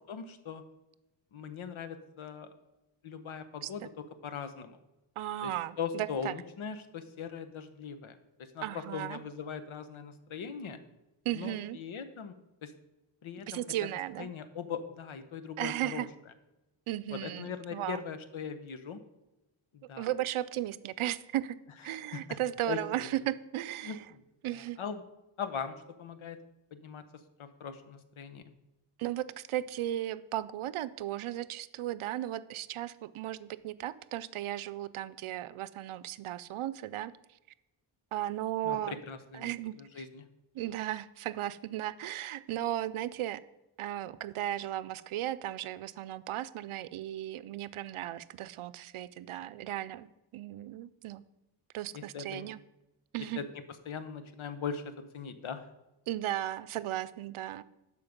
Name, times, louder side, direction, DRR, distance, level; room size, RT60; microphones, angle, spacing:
voice 1, 0.1-0.6 1.3-2.5 3.0-3.8 4.2-4.8 5.4-5.5 5.8-10.8 11.3-12.3 12.6-12.7 13.2-13.6 14.2-16.1 17.1-19.0 19.7-20.1 21.9-22.2 22.7-23.1 23.8-24.2 24.8-25.0 25.4-26.4 26.7-27.0 27.4-28.4 38.6-39.5 39.8-40.2 51.9-52.5 53.4-53.5 53.9-55.7, left 6 dB, 75° left, 10 dB, 1.1 m, -40 dB
voice 2, 5.2-6.3 8.6-9.2 11.2-11.8 13.5-14.3 15.6-16.1 16.9-18.0 20.0-21.6 21.8-24.0 24.4-24.8 29.0-37.1 38.1-39.0 39.3-40.0 40.5-43.4 43.8-51.3 51.7-52.6 53.1-53.4 56.1-57.6, right 13 dB, 85° right, 15 dB, 0.6 m, -36 dB
12.0 x 5.1 x 5.2 m, 0.97 s
cardioid pair, 80°, 49 cm